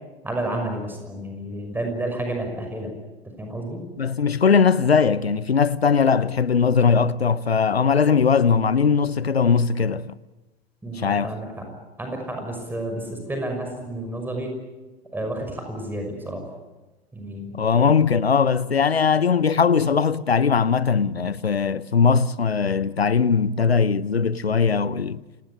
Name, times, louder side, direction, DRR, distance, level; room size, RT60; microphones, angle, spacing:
voice 1, 0.2-2.9 3.4-3.8 10.8-11.7 12.0-14.5 15.1-16.4 17.1-17.5, right 1 dB, 5° right, 5.9 m, -30 dB
voice 2, 4.0-10.1 10.9-11.3 17.6-25.2, left 6 dB, 85° left, 0.8 m, -20 dB
28.5 x 18.5 x 8.9 m
figure-of-eight pair, 95°, 30 cm